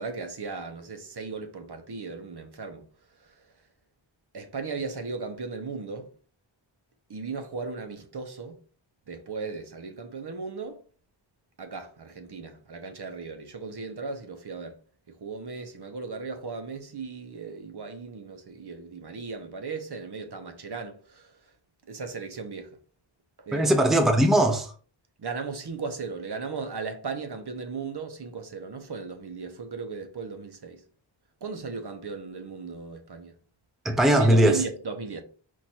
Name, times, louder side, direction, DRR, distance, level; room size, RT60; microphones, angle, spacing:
voice 1, 0.0-2.8 4.3-6.1 7.1-8.5 9.1-10.8 11.6-14.7 15.2-21.2 21.9-22.7 23.4-23.7 25.2-30.8 31.4-33.3 34.2-35.2, right 4 dB, 55° right, 0.8 m, -36 dB
voice 2, 23.5-24.7 33.8-34.6, right 1 dB, ahead, 0.6 m, -20 dB
4.6 x 2.5 x 4.2 m
wide cardioid pair, 95°, 48 cm